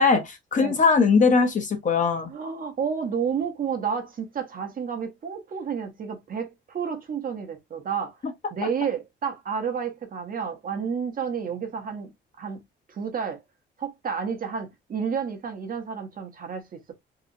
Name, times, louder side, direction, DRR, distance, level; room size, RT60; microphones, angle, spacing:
voice 1, 0.0-2.3, left 4 dB, 40° left, 0.9 m, -20 dB
voice 2, 2.3-8.2 8.5-12.1 12.4-12.6 12.9-13.4 13.8-16.9, right 6 dB, 45° right, 0.8 m, -30 dB
2.8 x 2.4 x 2.5 m
cardioid pair, 90°, 20 cm